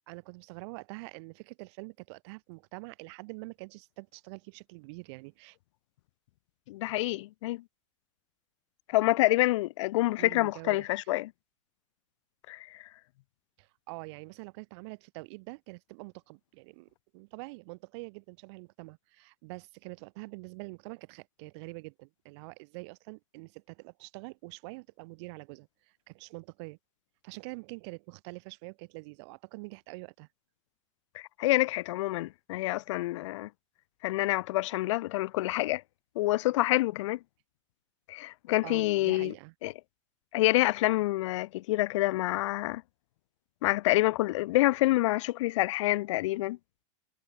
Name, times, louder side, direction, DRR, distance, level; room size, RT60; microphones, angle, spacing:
voice 1, 0.1-5.6 10.2-10.9 13.6-26.8 27.2-30.3 38.6-39.5, right 28 dB, 55° right, 5.8 m, -45 dB
voice 2, 6.7-7.6 8.9-11.3 12.5-12.8 31.1-33.5 34.0-35.8 36.2-37.2 38.1-39.3 39.6-39.7 40.3-42.8 43.6-46.6, left 18 dB, 70° left, 0.5 m, -27 dB
hypercardioid pair, 120°, 16 cm